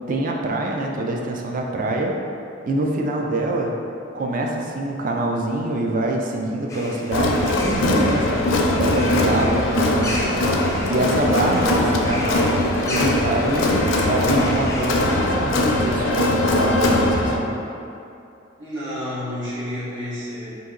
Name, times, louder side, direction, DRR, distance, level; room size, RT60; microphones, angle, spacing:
voice 1, 0.1-2.2 2.6-3.8 4.1-8.4 8.8-10.4 10.9-12.6 12.9-17.5, right 2 dB, 45° right, 1 dB, 0.4 m, -25 dB
sound 1, 6.7-15.3, left 1 dB, 15° left, 0.5 m, -34 dB
Crowd, 7.1-17.4, left 1 dB, 85° left, 0.4 m, -21 dB
voice 2, 18.6-20.6, left 1 dB, 70° right, -9 dB, 1.2 m, -30 dB
3.9 x 2.8 x 3.7 m, 2.6 s
head